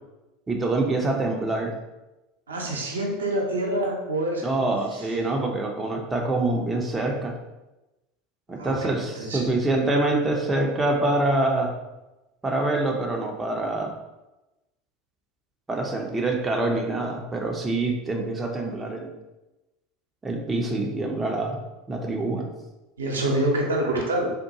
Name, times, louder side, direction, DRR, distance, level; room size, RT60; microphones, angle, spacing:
voice 1, 0.5-1.8 4.4-7.3 8.5-11.7 12.4-13.9 15.7-19.1 20.2-21.6 21.9-22.5, right 2 dB, 20° right, 1 dB, 0.5 m, -25 dB
voice 2, 2.5-4.7 5.0-5.1 8.5-8.9 9.1-9.4 23.0-24.3, right 1 dB, 80° right, -1 dB, 0.6 m, -26 dB
3.6 x 2.2 x 2.8 m, 1.0 s
figure-of-eight pair, 80°, 0 cm